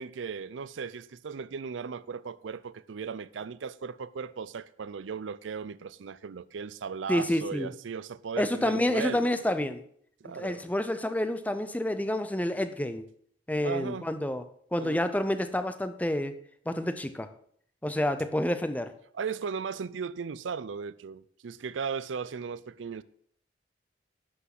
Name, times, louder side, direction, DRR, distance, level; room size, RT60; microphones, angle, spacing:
voice 1, 0.0-9.4 10.2-10.6 13.6-14.1 14.8-15.0 19.1-23.0, right 6 dB, 85° right, 0.5 m, -37 dB
voice 2, 7.1-7.7 8.4-9.8 10.3-13.1 13.5-14.4 14.7-16.4 16.7-17.3 17.8-18.9, left 1 dB, 10° left, 0.5 m, -29 dB
11.0 x 6.2 x 6.0 m
head